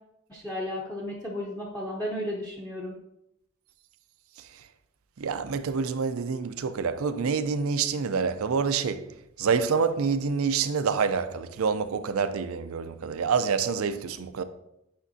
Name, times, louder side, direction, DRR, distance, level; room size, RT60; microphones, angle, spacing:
voice 1, 0.3-3.0, left 1 dB, 10° left, 0.7 m, -34 dB
voice 2, 5.2-14.4, right 5 dB, 90° right, 0.5 m, -27 dB
8.5 x 5.2 x 2.7 m
head